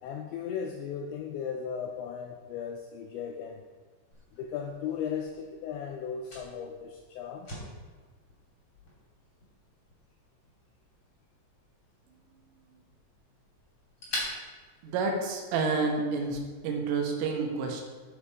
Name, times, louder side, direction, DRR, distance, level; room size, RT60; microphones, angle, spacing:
voice 1, 0.0-3.7 4.3-7.5, left 7 dB, 90° left, 4 dB, 2.6 m, -36 dB
Fire, 4.1-15.6, left 1 dB, 30° left, 3.8 m, -45 dB
voice 2, 14.8-17.8, right 4 dB, 80° right, 2 dB, 3.8 m, -29 dB
13.5 x 5.7 x 4.9 m, 1.4 s
omnidirectional pair, 5.9 m